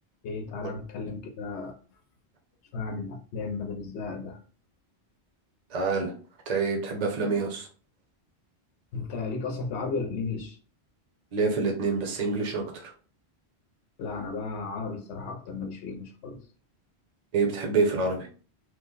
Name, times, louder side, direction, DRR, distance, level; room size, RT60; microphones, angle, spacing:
voice 1, 0.2-1.7 2.7-4.4 8.9-10.6 14.0-16.4, left 4 dB, 90° left, 4 dB, 0.9 m, -34 dB
voice 2, 5.7-6.1 6.5-7.7 11.3-12.9 17.3-18.3, right 4 dB, 45° right, 1 dB, 0.8 m, -27 dB
3.1 x 2.1 x 3.8 m, 0.39 s
omnidirectional pair, 1.1 m